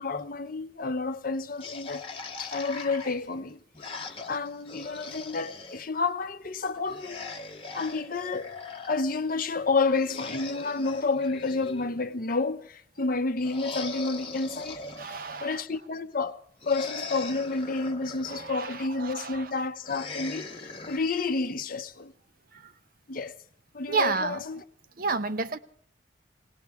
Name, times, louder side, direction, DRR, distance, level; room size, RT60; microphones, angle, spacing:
voice 1, 0.0-2.1 2.4-3.6 4.3-7.2 7.7-8.5 8.9-14.8 15.4-16.4 16.7-20.5 20.9-22.1 23.1-23.4 23.7-24.6, left 3 dB, 45° left, 0.7 m, -30 dB
sound 1, 1.6-5.8 6.8-9.0 9.9-12.3 13.4-15.6 16.6-18.8 19.8-21.0, left 3 dB, 30° left, 1.2 m, -40 dB
voice 2, 15.0-15.6 18.3-19.6 22.5-22.7 23.9-24.4 25.0-25.6, right 4 dB, 45° right, 0.6 m, -31 dB
20.5 x 18.0 x 3.5 m
head